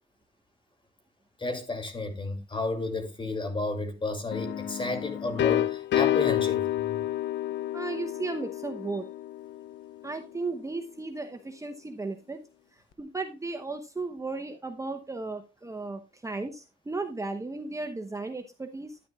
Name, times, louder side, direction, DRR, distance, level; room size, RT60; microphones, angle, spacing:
voice 1, 1.4-7.0, left 2 dB, 25° left, 2.6 m, -32 dB
sound 1, 4.3-10.0, left 13 dB, 65° left, 0.6 m, -29 dB
voice 2, 7.7-9.1 10.0-12.4 13.0-19.0, right 3 dB, 15° right, 0.8 m, -35 dB
10.5 x 10.0 x 2.3 m
cardioid pair, 90°, 20 cm